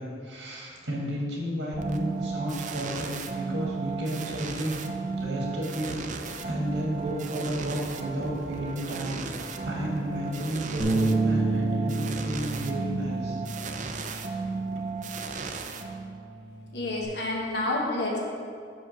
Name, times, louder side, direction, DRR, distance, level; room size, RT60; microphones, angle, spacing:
voice 1, 0.0-4.8 5.2-6.0 6.5-13.4, right 1 dB, 75° right, -3 dB, 1.9 m, -32 dB
sound 1, 1.7-16.4, right 4 dB, 45° right, 0.5 m, -35 dB
Bass guitar, 10.8-15.3 15.7-17.0, right 2 dB, ahead, 0.9 m, -30 dB
voice 2, 16.7-18.2, left 2 dB, 70° left, -2 dB, 1.1 m, -29 dB
5.8 x 5.1 x 6.4 m, 2.3 s
head